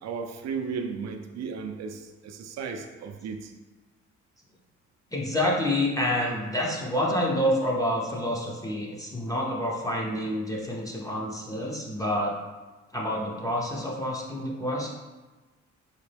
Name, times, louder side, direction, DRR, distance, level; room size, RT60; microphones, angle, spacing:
voice 1, 0.0-3.5, right 5 dB, 60° right, 5 dB, 0.5 m, -35 dB
voice 2, 5.1-12.3 12.9-14.9, left 1 dB, 10° left, -3 dB, 0.6 m, -28 dB
4.0 x 2.2 x 3.3 m, 1.2 s
cardioid pair, 90°, 30 cm